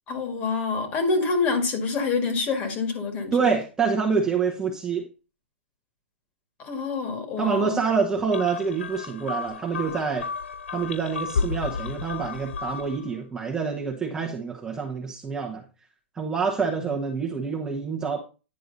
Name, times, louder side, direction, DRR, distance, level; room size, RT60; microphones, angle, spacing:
voice 1, 0.1-3.4 6.6-7.8, left 4 dB, 30° left, 2.0 m, -26 dB
voice 2, 3.3-5.1 7.4-10.3 10.7-15.6 16.1-18.2, right 5 dB, 10° right, 1.0 m, -26 dB
sound 1, 8.3-13.1, left 5 dB, 85° left, 0.5 m, -32 dB
9.8 x 4.7 x 4.0 m
hypercardioid pair, 145°, 6 cm